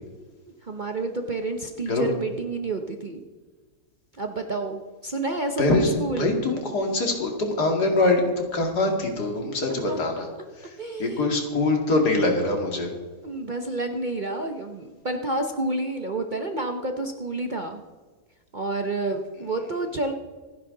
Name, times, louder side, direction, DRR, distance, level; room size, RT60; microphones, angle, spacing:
voice 1, 0.6-3.2 4.2-6.3 9.7-10.0 10.8-11.3 13.2-17.8 18.5-20.1, right 2 dB, 40° right, 5 dB, 0.8 m, -29 dB
voice 2, 5.6-10.3 10.6-12.9, left 2 dB, 75° left, 2 dB, 2.8 m, -24 dB
27.0 x 10.0 x 3.9 m, 1.4 s
omnidirectional pair, 1.7 m